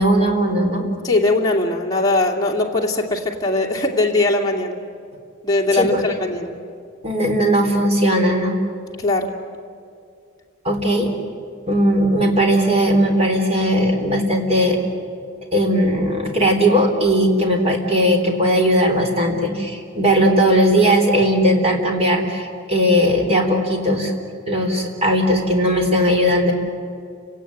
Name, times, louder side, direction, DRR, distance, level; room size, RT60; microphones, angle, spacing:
voice 1, 0.0-0.9 5.7-6.0 7.0-8.5 10.6-11.1 11.7-14.8 15.5-24.1 24.5-26.5, equal, 30° right, 3 dB, 3.8 m, -18 dB
voice 2, 1.0-4.8 5.4-6.5 9.0-9.3, left 2 dB, 20° left, -2 dB, 2.5 m, -20 dB
30.0 x 18.5 x 9.8 m, 2.4 s
head